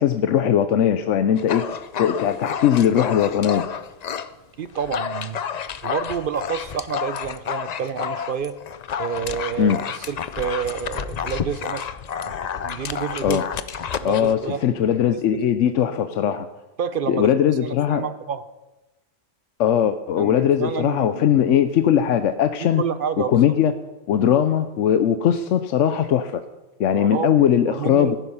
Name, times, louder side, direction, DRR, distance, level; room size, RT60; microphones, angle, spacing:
voice 1, 0.0-1.6 2.0-3.7 9.6-9.8 13.2-13.5 14.0-16.5 17.1-18.1 19.6-22.8 23.3-23.7 24.1-26.4 26.8-28.2, left 9 dB, 75° left, 10 dB, 1.0 m, -19 dB
Dog, 1.4-4.3 4.7-14.3, left 7 dB, 55° left, 0.4 m, -30 dB
voice 2, 4.6-5.4 5.8-8.5 9.0-11.9 12.2-12.3 12.6-13.4 14.0-14.6 15.3-15.4 16.8-18.4 20.2-21.3 22.8-23.4 26.9-28.2, right 7 dB, 50° right, 12 dB, 0.7 m, -29 dB
15.0 x 10.0 x 5.6 m, 1.1 s
omnidirectional pair, 1.3 m